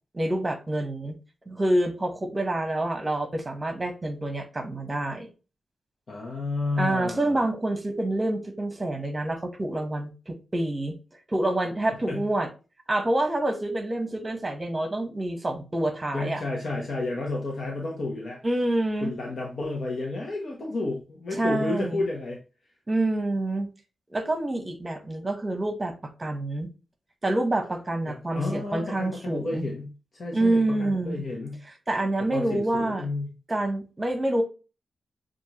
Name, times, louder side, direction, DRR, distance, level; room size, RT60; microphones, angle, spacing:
voice 1, 0.1-1.1 1.5-5.3 6.8-11.0 11.3-12.5 12.9-16.4 18.4-19.1 21.4-22.0 22.9-23.7 24.1-26.7 27.2-29.7 30.3-31.2 31.9-33.1 33.5-34.4, right 1 dB, 20° right, 6 dB, 1.1 m, -27 dB
voice 2, 6.1-7.4 11.9-12.3 16.1-18.4 19.0-22.4 28.1-31.6 32.2-33.3, left 2 dB, 55° left, -2 dB, 1.0 m, -31 dB
6.5 x 2.5 x 3.0 m, 0.32 s
cardioid pair, 90°, 0 cm